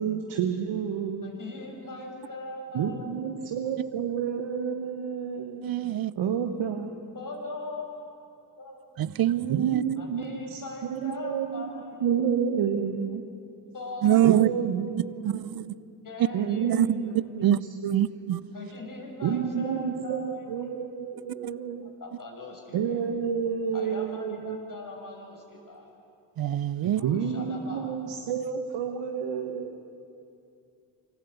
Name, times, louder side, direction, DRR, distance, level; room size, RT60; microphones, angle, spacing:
voice 1, 0.0-1.3 2.7-5.7 6.2-6.9 9.0-9.1 9.5-10.6 10.9-13.2 14.2-15.7 16.3-18.2 19.2-21.9 22.7-24.6 27.0-29.8, right 7 dB, 65° right, 5 dB, 1.5 m, -30 dB
voice 2, 1.2-3.5 7.1-7.9 8.6-9.0 10.0-12.1 13.7-14.4 16.0-17.7 18.5-20.8 22.0-23.0 23.7-25.9 26.8-28.0, left 2 dB, 40° left, 0 dB, 6.3 m, -41 dB
voice 3, 5.6-6.1 9.0-9.8 11.0-11.1 14.0-14.5 15.2-15.4 16.7-16.9 17.4-17.6 17.8-18.4 26.4-27.0, right 12 dB, 50° right, 20 dB, 0.7 m, -24 dB
25.0 x 14.5 x 8.5 m, 2.7 s
hypercardioid pair, 45°, 48 cm